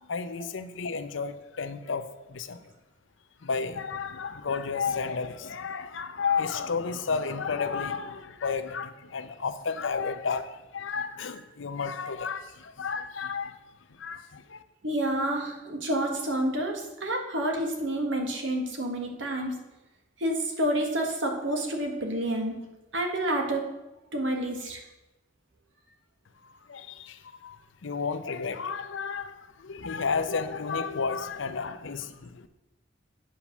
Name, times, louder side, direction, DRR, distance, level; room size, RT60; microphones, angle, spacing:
voice 1, 0.0-2.6 3.4-13.6 13.9-14.6 26.4-32.5, left 5 dB, 80° left, 0.6 m, -32 dB
voice 2, 14.8-19.5 20.2-22.5 22.9-23.6 24.1-24.8, right 1 dB, 75° right, 1.6 m, -29 dB
8.6 x 5.6 x 6.0 m
head